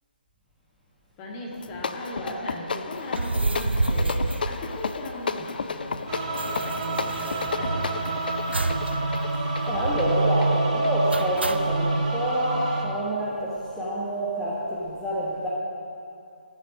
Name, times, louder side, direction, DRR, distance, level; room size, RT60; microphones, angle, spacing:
voice 1, 1.2-8.0, left 1 dB, 20° left, -2 dB, 1.7 m, -38 dB
sound 1, 1.5-11.8, left 5 dB, 60° left, 0.5 m, -33 dB
sound 2, 3.1-5.4 5.6-5.7 5.9-8.0 8.5-8.9 9.2-9.3 9.7-10.2 11.1-11.8, right 2 dB, 85° right, 0.6 m, -29 dB
sound 3, 6.1-12.8, right 2 dB, 40° right, 1.6 m, -28 dB
voice 2, 9.7-15.5, right 1 dB, ahead, -9 dB, 1.3 m, -27 dB
14.0 x 6.9 x 6.3 m, 2.5 s
figure-of-eight pair, 145°, 6 cm